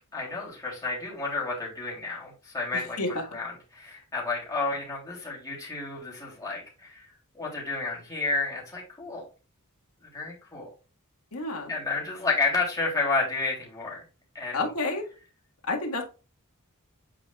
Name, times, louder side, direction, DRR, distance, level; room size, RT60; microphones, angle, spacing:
voice 1, 0.1-3.0 3.3-7.1 7.3-9.2 10.1-10.7 11.7-14.0 14.3-14.6, left 3 dB, 15° left, -4 dB, 3.2 m, -31 dB
voice 2, 2.7-3.2 11.3-11.7 14.5-15.0 15.7-16.0, left 2 dB, 85° left, 2 dB, 1.8 m, -30 dB
8.3 x 5.1 x 2.4 m, 0.33 s
head